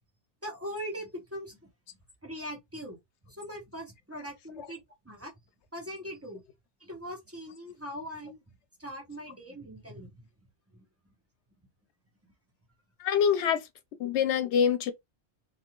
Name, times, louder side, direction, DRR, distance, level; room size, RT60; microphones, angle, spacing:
voice 1, 0.4-1.7 2.2-3.0 3.3-4.8 5.0-5.3 5.7-6.4 6.8-8.4 8.8-10.1 10.7-10.8, equal, 15° right, 0.8 m, -40 dB
voice 2, 13.0-13.6 14.0-14.9, left 8 dB, 85° left, 0.9 m, -25 dB
2.5 x 2.3 x 2.9 m
omnidirectional pair, 1.1 m